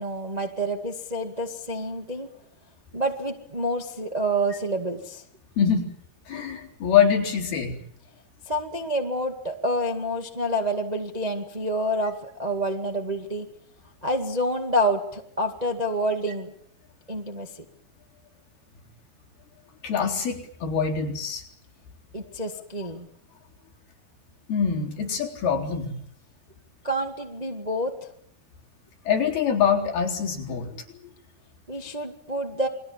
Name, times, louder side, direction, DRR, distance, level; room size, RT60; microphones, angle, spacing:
voice 1, 0.0-2.3 2.9-5.2 8.4-13.5 14.0-16.5 17.1-17.6 22.1-23.1 26.8-27.9 31.7-32.7, right 1 dB, 30° right, 2 dB, 0.7 m, -28 dB
voice 2, 6.3-7.8 19.8-21.4 24.5-26.0 29.1-30.8, left 7 dB, 70° left, 0 dB, 5.8 m, -24 dB
29.0 x 22.0 x 7.4 m, 0.70 s
omnidirectional pair, 4.7 m